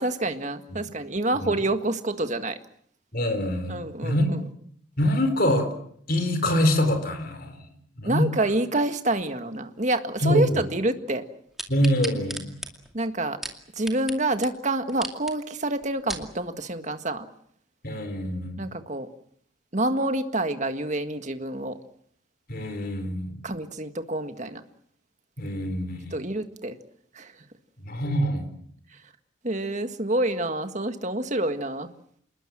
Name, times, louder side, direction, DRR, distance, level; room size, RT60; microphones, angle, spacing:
voice 1, 0.0-2.6 3.7-4.4 8.0-11.2 12.9-13.4 13.8-17.3 18.6-19.1 19.7-21.8 23.4-24.6 26.1-26.8 27.1-27.4 29.4-31.9, right 2 dB, 35° right, 8 dB, 1.8 m, -27 dB
voice 2, 3.1-4.3 5.0-5.7 6.1-7.6 8.0-8.3 10.2-10.6 11.7-12.5 17.8-18.6 22.5-23.5 25.4-26.2 27.8-28.5, equal, 45° left, 8 dB, 4.2 m, -25 dB
sound 1, 11.6-14.2 14.4-14.5 14.9-15.3 15.8-16.3 16.9-17.0, right 1 dB, ahead, 2.4 m, -36 dB
28.5 x 20.5 x 7.6 m, 0.66 s
head